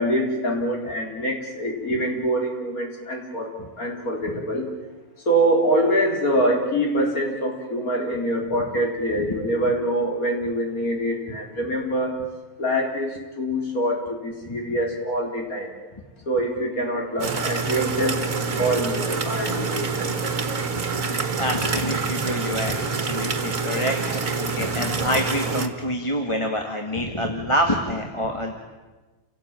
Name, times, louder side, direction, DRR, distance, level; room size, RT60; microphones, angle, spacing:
voice 1, 0.0-3.5 3.8-4.7 5.3-12.1 12.6-15.7 16.3-18.3 18.6-20.2, right 1 dB, 70° left, 1 dB, 4.8 m, -24 dB
sound 1, 17.2-25.7, right 5 dB, 60° right, 2.2 m, -26 dB
voice 2, 20.9-28.6, equal, 20° left, 2 dB, 2.1 m, -27 dB
29.5 x 18.0 x 9.1 m, 1.3 s
omnidirectional pair, 1.6 m